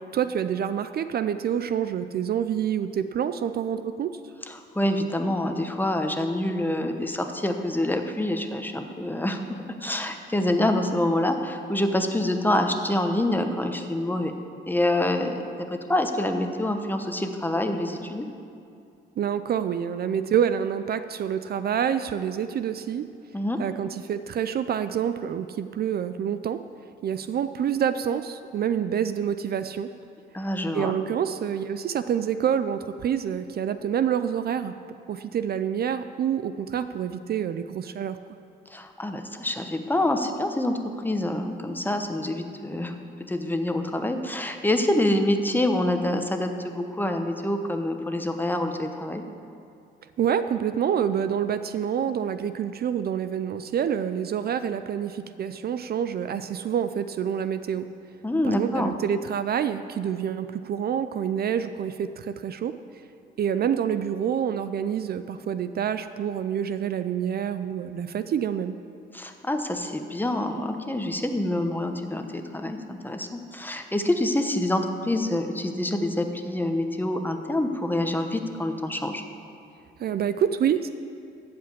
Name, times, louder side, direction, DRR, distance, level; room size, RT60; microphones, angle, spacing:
voice 1, 0.1-4.1 19.2-23.1 23.6-26.6 27.0-29.9 30.7-34.7 35.1-38.2 50.2-57.9 58.4-62.7 63.4-68.8 80.0-80.9, right 8 dB, 50° right, 11 dB, 0.5 m, -27 dB
voice 2, 4.5-14.3 14.7-15.4 15.7-18.3 23.3-23.6 30.3-31.0 38.7-40.8 41.0-43.0 43.3-49.2 58.2-58.9 69.1-79.2, left 1 dB, 10° left, 6 dB, 1.0 m, -26 dB
14.0 x 5.1 x 8.4 m, 2.5 s
cardioid pair, 90°, 20 cm